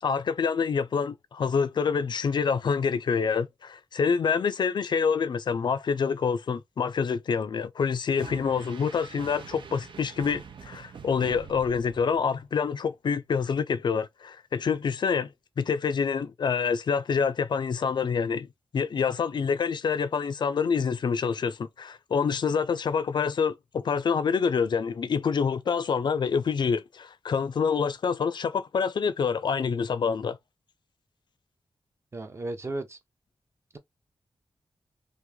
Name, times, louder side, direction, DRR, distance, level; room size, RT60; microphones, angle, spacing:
voice 1, 0.0-15.3 15.6-18.5 18.7-30.4, left 6 dB, 60° left, 0.4 m, -27 dB
sound 1, 8.2-12.5, right 6 dB, 70° right, 0.7 m, -45 dB
voice 2, 32.1-33.0, right 2 dB, 30° right, 0.6 m, -34 dB
3.1 x 2.5 x 3.5 m
wide cardioid pair, 130°, 9 cm